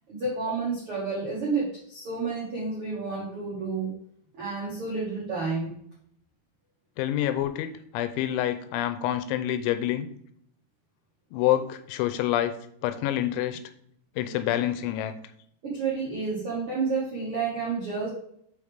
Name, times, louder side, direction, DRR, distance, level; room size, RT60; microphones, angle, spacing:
voice 1, 0.1-3.9 4.3-5.7 15.6-18.1, right 4 dB, 75° right, -6 dB, 1.2 m, -30 dB
voice 2, 7.0-10.1 11.3-12.5 12.8-13.6 14.2-15.1, left 12 dB, 85° left, 10 dB, 2.9 m, -27 dB
6.4 x 5.5 x 3.4 m, 0.68 s
omnidirectional pair, 5.4 m